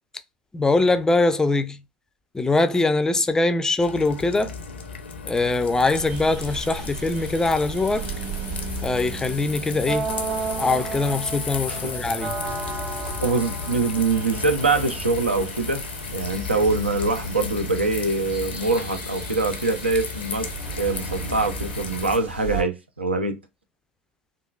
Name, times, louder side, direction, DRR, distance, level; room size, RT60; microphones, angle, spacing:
voice 1, 0.5-1.8 2.3-4.5 5.3-8.1 8.8-10.1 10.6-12.3, left 3 dB, 10° left, 0.3 m, -22 dB
sound 1, 3.8-22.2, left 5 dB, 80° left, 0.5 m, -35 dB
sound 2, 5.9-22.6, right 3 dB, 45° right, 1.8 m, -34 dB
voice 2, 11.7-12.0 13.2-15.8 16.1-20.5 20.8-23.4, right 3 dB, 90° right, 0.5 m, -24 dB
3.6 x 2.4 x 2.2 m
figure-of-eight pair, 80°, 6 cm